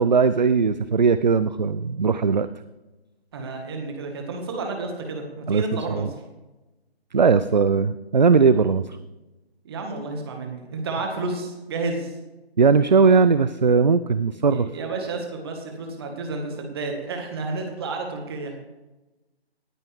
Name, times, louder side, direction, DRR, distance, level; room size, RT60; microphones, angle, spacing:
voice 1, 0.0-2.5 5.5-5.6 5.9-6.1 7.1-9.0 12.6-14.7, right 5 dB, 45° right, 13 dB, 0.4 m, -19 dB
voice 2, 3.3-6.1 9.6-12.2 14.5-18.6, right 3 dB, 25° right, 3 dB, 1.8 m, -31 dB
18.5 x 9.3 x 3.5 m, 1.1 s
figure-of-eight pair, 160°, 32 cm